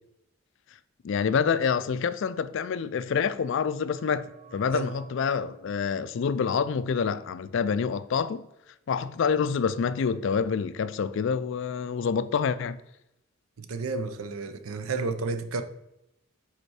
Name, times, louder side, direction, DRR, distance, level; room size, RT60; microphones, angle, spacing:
voice 1, 1.0-4.3 4.5-8.5 8.9-12.8, left 6 dB, 60° left, 0.3 m, -27 dB
sound 1, 3.1-8.5 8.8-8.9, right 4 dB, 35° right, 0.7 m, -55 dB
voice 2, 13.6-15.6, right 4 dB, 85° right, 0.6 m, -31 dB
5.2 x 4.4 x 4.8 m
head